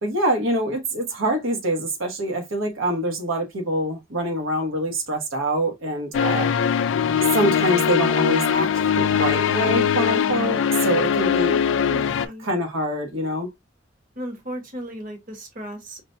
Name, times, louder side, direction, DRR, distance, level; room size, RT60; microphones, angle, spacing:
voice 1, 0.0-6.5 7.3-8.7 9.0-11.5 12.4-13.5, right 1 dB, 90° right, 1.0 m, -25 dB
sound 1, 6.1-12.3, left 7 dB, 70° left, 0.4 m, -21 dB
voice 2, 11.2-12.5 14.1-16.0, equal, 45° right, 1.0 m, -36 dB
5.0 x 2.1 x 2.5 m
head